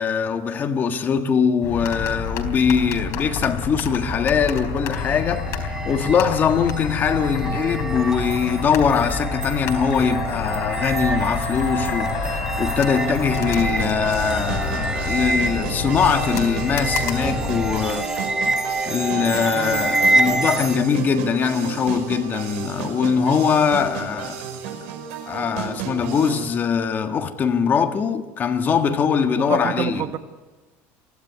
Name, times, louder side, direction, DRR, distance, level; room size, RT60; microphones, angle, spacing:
voice 1, 0.0-18.1 18.9-24.4 25.3-30.0, left 6 dB, 30° left, 1.6 m, -22 dB
sound 1, 1.6-17.9, left 5 dB, 50° left, 3.9 m, -29 dB
sound 2, 4.9-20.8, right 2 dB, 10° right, 0.9 m, -27 dB
sound 3, 13.6-26.5, right 7 dB, 90° right, 5.5 m, -33 dB
voice 2, 19.5-19.9 29.2-30.2, right 11 dB, 45° right, 1.2 m, -29 dB
23.5 x 16.0 x 9.8 m
cardioid pair, 140°, 6 cm